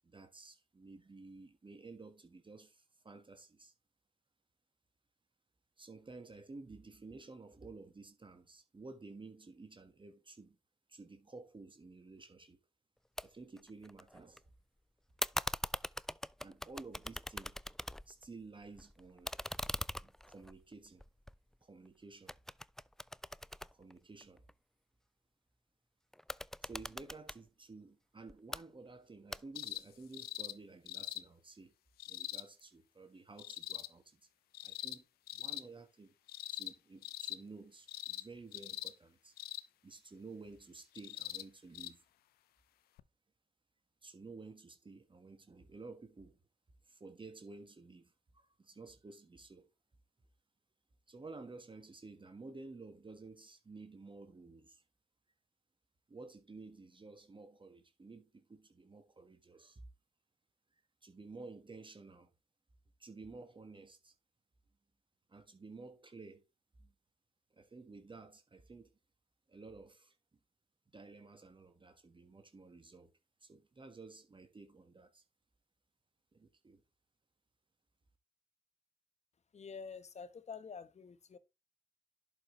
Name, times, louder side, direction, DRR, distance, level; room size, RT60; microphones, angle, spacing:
voice 1, 0.0-3.7 5.8-10.6 10.9-12.6 13.2-14.5 16.4-17.6 18.1-19.3 20.0-21.0 21.6-22.4 23.7-24.5 26.6-31.7 32.1-34.3 34.6-35.1 35.3-36.1 36.5-39.4 39.8-42.1 44.0-46.4 46.8-49.7 51.1-54.8 56.1-59.8 61.0-62.3 63.0-64.1 65.3-66.4 66.8-66.9 67.5-68.9 69.5-70.2 70.9-73.1 73.4-75.2 76.3-76.8, right 3 dB, 30° right, 1.4 m, -53 dB
sound 1, 13.2-13.3 13.6-14.4 15.2-18.3 18.6-21.9 22.3-24.5 26.1-27.4 28.3-28.6 29.3-29.8, left 1 dB, 5° left, 0.3 m, -42 dB
sound 2, 29.5-29.8 30.1-30.5 30.9-31.2 32.0-32.4 33.4-33.9 34.5-35.0 35.3-35.6 36.3-36.7 37.0-37.4 37.9-38.2 38.5-38.9 39.4-39.7 40.9-41.4 41.7-41.9 43.0-43.1, left 14 dB, 80° left, 0.5 m, -43 dB
voice 2, 79.5-81.4, left 5 dB, 45° left, 1.1 m, -48 dB
11.0 x 5.4 x 3.1 m
supercardioid pair, 45°, 16 cm